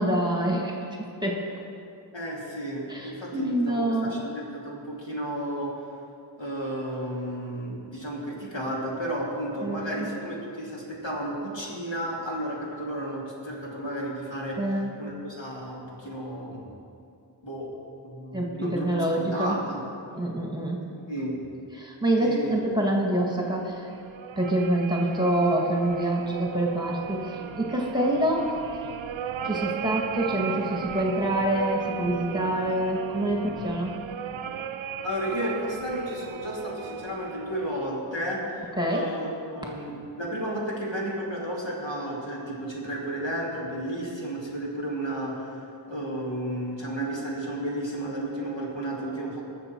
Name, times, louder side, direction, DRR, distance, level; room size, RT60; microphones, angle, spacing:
voice 1, 0.0-1.4 2.9-4.3 9.6-10.1 14.6-14.9 18.3-19.5 20.1-20.8 21.7-23.9 24.4-28.5 29.4-33.9 38.8-39.1, right 1 dB, 10° right, -1 dB, 1.8 m, -26 dB
voice 2, 2.1-5.7 6.3-16.7 17.4-17.7 18.0-19.8 21.1-21.4 22.2-22.6 35.0-45.6 45.9-49.4, right 1 dB, 65° left, -5 dB, 2.9 m, -33 dB
sound 1, 23.6-37.9, right 8 dB, 75° right, 0.5 m, -36 dB
20.5 x 6.9 x 4.6 m, 2.6 s
wide cardioid pair, 45°, 48 cm